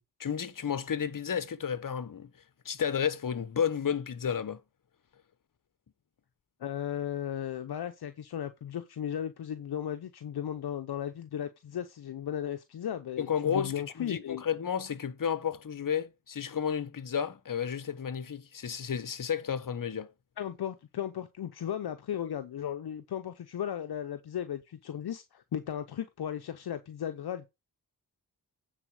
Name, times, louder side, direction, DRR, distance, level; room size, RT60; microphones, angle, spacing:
voice 1, 0.2-2.3 2.6-4.6 13.2-20.1, left 7 dB, 55° left, 1.1 m, -32 dB
voice 2, 6.6-14.4 20.4-27.5, left 10 dB, 70° left, 0.8 m, -36 dB
9.1 x 4.2 x 6.4 m
cardioid pair, 55°, 40 cm